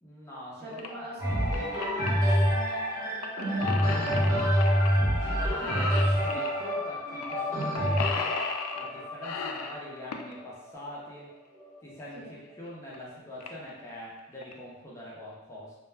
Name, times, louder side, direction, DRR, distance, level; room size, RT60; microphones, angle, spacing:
voice 1, 0.0-1.5 5.3-8.4 8.7-11.3 11.8-12.2 12.5-15.8, left 1 dB, 10° left, -6 dB, 0.4 m, -43 dB
voice 2, 0.6-4.8 5.6-5.9 6.3-6.4 12.1-12.4, equal, 45° right, -5 dB, 0.6 m, -43 dB
sound 1, 0.7-0.9 1.3-2.1 3.2-4.9 5.2-5.4 5.6-6.5 7.2-7.3 7.6-8.9 9.2-10.3 12.0-12.1 12.7-12.8 12.9-13.0 13.4-13.7 14.2-14.5, left 5 dB, 85° left, 0.3 m, -35 dB
sound 2, 1.2-11.0 11.6-11.7, equal, 15° right, 0.8 m, -27 dB
2.1 x 2.1 x 3.2 m, 1.0 s
head